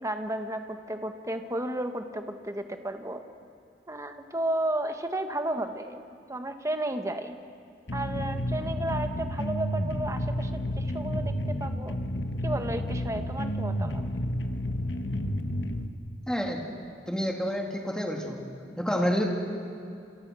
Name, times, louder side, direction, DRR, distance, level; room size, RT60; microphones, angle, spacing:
voice 1, 0.0-3.2 3.9-6.0 6.3-7.3 7.9-11.9 12.4-14.1, right 1 dB, 20° right, 6 dB, 1.6 m, -33 dB
sound 1, 7.9-15.9, equal, 80° left, 1.5 m, -31 dB
voice 2, 16.3-16.6 17.1-18.4 18.8-19.3, equal, 5° left, 0 dB, 3.2 m, -28 dB
29.0 x 27.5 x 6.4 m, 2.5 s
head